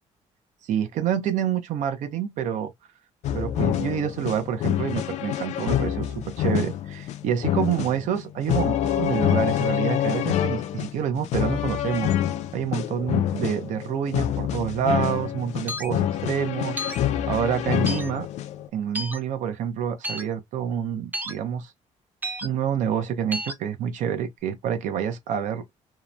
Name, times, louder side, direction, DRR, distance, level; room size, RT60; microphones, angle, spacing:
voice 1, 0.6-2.7 3.3-12.1 12.5-16.8 17.3-18.3 18.7-21.7 22.4-25.7, right 8 dB, 70° right, 0.6 m, -27 dB
sound 1, 3.2-18.7, left 11 dB, 60° left, 0.4 m, -26 dB
sound 2, 15.7-15.9 16.8-17.0 17.9-18.1 18.9-19.2 20.0-20.2 21.1-21.3 22.2-22.5 23.3-23.5, equal, 15° right, 0.5 m, -31 dB
2.8 x 2.1 x 2.3 m
cardioid pair, 135°, 13 cm